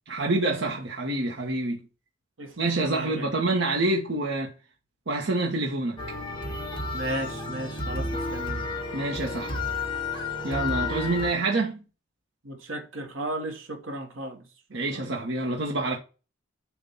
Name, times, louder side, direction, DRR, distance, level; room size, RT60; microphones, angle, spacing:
voice 1, 0.1-1.8 2.6-4.5 5.1-6.0 8.9-9.5 10.4-11.8 14.7-16.0, right 2 dB, 65° right, 1.1 m, -27 dB
voice 2, 2.4-3.3 6.9-8.6 12.4-14.4 14.9-15.2, right 1 dB, 85° right, 1.4 m, -35 dB
sound 1, 6.0-11.3, left 3 dB, 25° left, 1.3 m, -31 dB
7.2 x 2.6 x 5.4 m
head